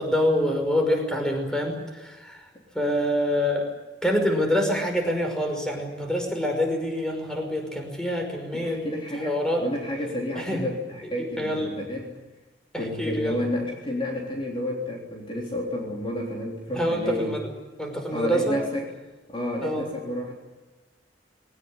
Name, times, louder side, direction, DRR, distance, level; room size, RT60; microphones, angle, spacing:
voice 1, 0.0-2.4 2.7-3.7 4.0-8.8 9.2-9.6 10.4-10.6 11.4-11.7 12.7-13.4 16.7-17.5 17.8-18.6 19.6-19.9, equal, 5° left, 3 dB, 5.7 m, -26 dB
voice 2, 8.5-12.1 12.8-17.3 18.1-18.9 19.3-20.3, left 1 dB, 30° left, -1 dB, 3.8 m, -30 dB
22.0 x 19.0 x 10.0 m, 1.1 s
head